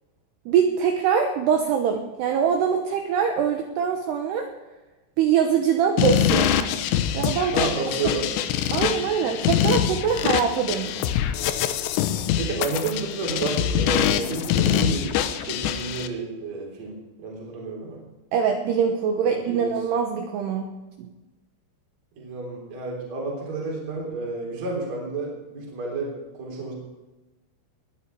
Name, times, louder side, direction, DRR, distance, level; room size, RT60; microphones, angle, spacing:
voice 1, 0.5-4.5 5.2-6.6 7.1-7.7 8.7-11.1 18.3-20.7 21.0-21.1, right 7 dB, 75° right, 4 dB, 2.5 m, -23 dB
sound 1, 6.0-16.1, left 10 dB, 80° left, 2.6 m, -24 dB
voice 2, 7.5-8.3 8.7-8.9 12.4-18.0 19.2-19.7 22.2-26.7, right 3 dB, 35° right, -2 dB, 4.4 m, -31 dB
20.5 x 11.0 x 4.7 m, 1.1 s
omnidirectional pair, 5.9 m